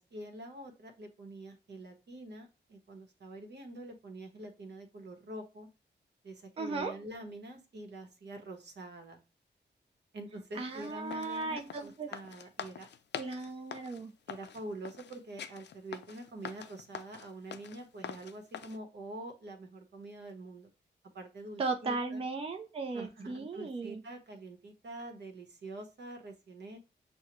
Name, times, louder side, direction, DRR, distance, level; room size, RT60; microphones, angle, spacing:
voice 1, 0.0-5.7 6.2-9.2 10.1-12.9 14.3-20.7 21.1-22.2 22.9-26.8, right 1 dB, 65° right, 5 dB, 0.9 m, -46 dB
voice 2, 6.6-6.9 10.6-12.1 13.2-14.1 21.6-24.0, right 3 dB, 30° right, 3 dB, 0.4 m, -36 dB
sound 1, 10.7-18.8, left 8 dB, 65° left, 0.4 m, -45 dB
6.2 x 2.1 x 2.9 m, 0.30 s
wide cardioid pair, 100°, 19 cm